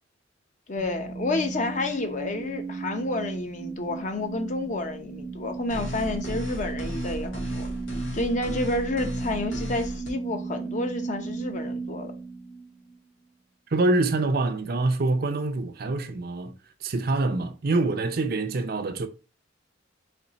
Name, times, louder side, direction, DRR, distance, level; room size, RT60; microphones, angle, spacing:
voice 1, 0.7-7.7 8.1-12.1, left 2 dB, 40° left, 0.7 m, -30 dB
sound 1, 0.8-12.9, right 4 dB, 65° left, 1.9 m, -35 dB
sound 2, 5.7-10.1, left 1 dB, 80° left, 1.9 m, -35 dB
voice 2, 13.7-16.5 16.8-19.1, right 2 dB, 50° right, 0.5 m, -25 dB
4.3 x 3.1 x 4.0 m
head